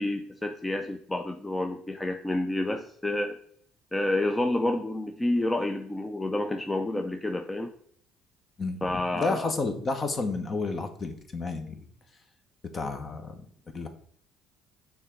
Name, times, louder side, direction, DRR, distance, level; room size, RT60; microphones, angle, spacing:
voice 1, 0.0-3.4 3.9-7.7 8.8-9.5, left 1 dB, 15° left, 5 dB, 0.6 m, -29 dB
voice 2, 8.6-11.8 12.7-13.4 13.7-13.9, left 3 dB, 35° left, 7 dB, 1.1 m, -31 dB
6.5 x 3.8 x 4.4 m, 0.63 s
supercardioid pair, 80°, 0 cm